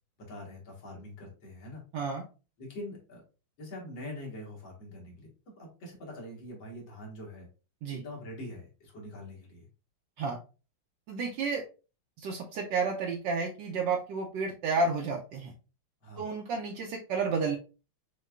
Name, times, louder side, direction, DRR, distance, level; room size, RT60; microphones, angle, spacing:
voice 1, 0.2-1.8 2.6-3.2 3.6-7.5 7.9-9.7 16.0-16.3, left 1 dB, 80° left, -2 dB, 2.2 m, -44 dB
voice 2, 11.1-11.6 12.2-15.5 16.2-17.6, right 4 dB, 75° right, 0 dB, 1.3 m, -31 dB
6.3 x 2.3 x 2.4 m, 0.33 s
omnidirectional pair, 2.1 m